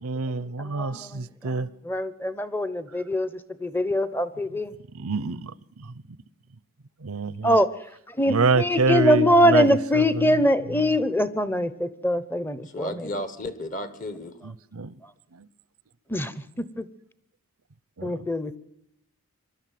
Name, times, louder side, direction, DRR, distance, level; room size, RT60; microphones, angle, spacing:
voice 1, 0.0-1.7 5.0-5.5 7.0-7.6 8.3-10.3 14.7-14.9 18.0-18.1, right 4 dB, 80° right, 0.7 m, -26 dB
voice 2, 0.7-1.1 1.9-3.3 3.6-4.7 7.4-7.7 8.2-12.9 16.1-16.3 16.8-16.9 18.0-18.6, equal, 10° left, 0.8 m, -22 dB
voice 3, 12.6-14.4, left 1 dB, 35° left, 1.5 m, -33 dB
24.0 x 12.5 x 9.3 m
head